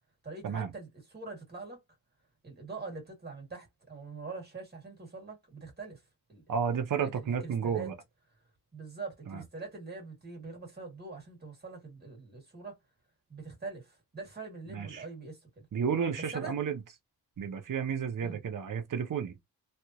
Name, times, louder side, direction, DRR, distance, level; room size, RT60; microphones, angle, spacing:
voice 1, 0.2-0.9 1.1-1.8 2.4-6.0 6.3-6.6 7.0-7.9 8.7-12.8 13.3-15.7 16.3-16.5 18.2-18.4, right 4 dB, 25° right, 1.8 m, -44 dB
voice 2, 6.5-7.9 9.3-9.4 14.7-15.1 15.7-16.8 17.4-19.4, right 7 dB, 60° right, 0.7 m, -32 dB
3.3 x 2.3 x 2.8 m
wide cardioid pair, 150°, 36 cm